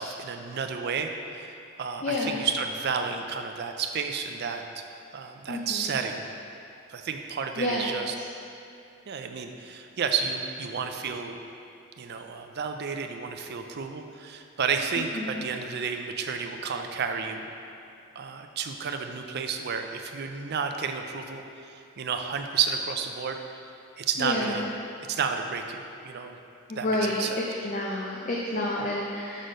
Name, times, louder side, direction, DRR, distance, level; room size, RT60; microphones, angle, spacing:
voice 1, 0.0-4.9 5.1-6.3 6.9-8.1 9.1-11.4 12.0-17.5 18.2-23.4 24.0-24.7 25.1-26.4 26.8-27.4, right 6 dB, 45° right, 6 dB, 0.4 m, -31 dB
voice 2, 2.0-2.4 5.5-6.0 7.6-7.9 15.1-15.4 24.2-24.7 26.7-29.5, left 1 dB, 35° left, -3 dB, 0.5 m, -29 dB
6.3 x 4.3 x 5.1 m, 2.7 s
head